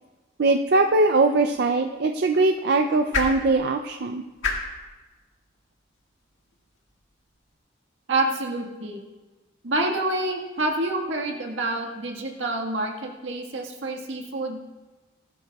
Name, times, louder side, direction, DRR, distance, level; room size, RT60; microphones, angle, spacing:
voice 1, 0.4-4.2, right 3 dB, 55° right, 5 dB, 0.4 m, -21 dB
sound 1, 1.3-7.5, left 4 dB, 85° left, 1.8 m, -36 dB
voice 2, 8.1-9.0 9.6-14.6, right 2 dB, 80° right, 1 dB, 1.6 m, -27 dB
18.5 x 12.0 x 2.3 m, 1.2 s
head